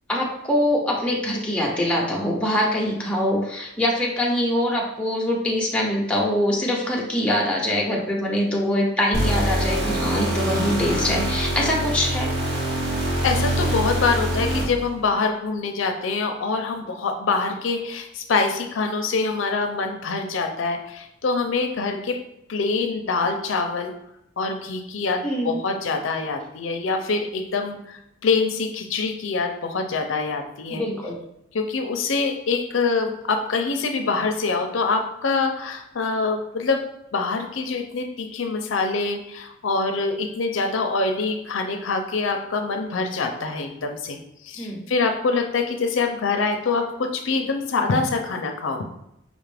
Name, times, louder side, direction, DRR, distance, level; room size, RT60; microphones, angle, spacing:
voice 1, 0.1-12.3 25.2-25.6 30.7-31.1 44.6-44.8, left 1 dB, 5° left, -3 dB, 0.7 m, -23 dB
sound 1, 9.1-14.9, right 1 dB, 90° right, 1.6 m, -24 dB
voice 2, 13.2-22.2 22.5-23.9 24.4-30.8 31.5-36.8 37.1-44.2 44.4-48.9, left 4 dB, 75° left, 5 dB, 0.5 m, -25 dB
5.1 x 2.5 x 3.3 m, 0.80 s
head